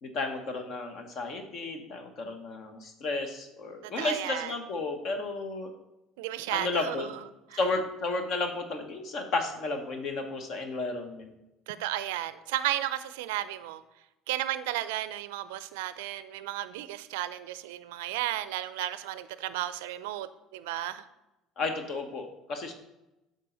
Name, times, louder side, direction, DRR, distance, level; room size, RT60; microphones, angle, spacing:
voice 1, 0.0-5.7 6.5-7.1 7.5-11.3 21.6-22.7, left 3 dB, 55° left, 6 dB, 1.2 m, -33 dB
voice 2, 3.8-4.5 6.2-7.2 7.5-7.6 11.7-13.8 14.3-21.0, right 14 dB, 80° right, 14 dB, 0.4 m, -34 dB
8.0 x 5.4 x 3.9 m, 0.95 s
hypercardioid pair, 65°, 0 cm